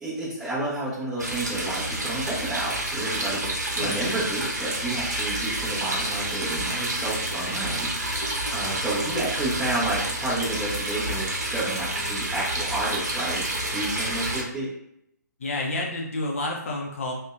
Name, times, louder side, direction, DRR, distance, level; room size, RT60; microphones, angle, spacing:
voice 1, 0.0-14.7, right 1 dB, 5° right, -10 dB, 0.6 m, -31 dB
sound 1, 1.2-14.4, right 1 dB, 60° right, 0.7 m, -29 dB
voice 2, 15.4-17.1, left 2 dB, 45° left, -1 dB, 0.4 m, -29 dB
2.6 x 2.1 x 2.3 m, 0.77 s
figure-of-eight pair, 135°, 10 cm